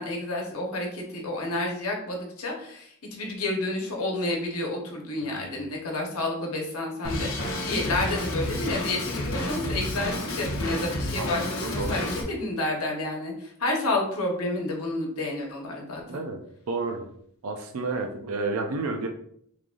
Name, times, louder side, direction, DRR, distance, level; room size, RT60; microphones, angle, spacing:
voice 1, 0.0-16.2, left 2 dB, 80° left, 0 dB, 1.0 m, -30 dB
voice 2, 5.2-5.6 11.2-11.3 11.5-12.1 16.1-16.4 16.7-17.1 17.4-19.1, right 3 dB, 75° right, 4 dB, 0.4 m, -31 dB
Drum kit, 7.0-12.2, left 1 dB, 60° left, 0.7 m, -30 dB
3.7 x 3.2 x 2.4 m, 0.66 s
head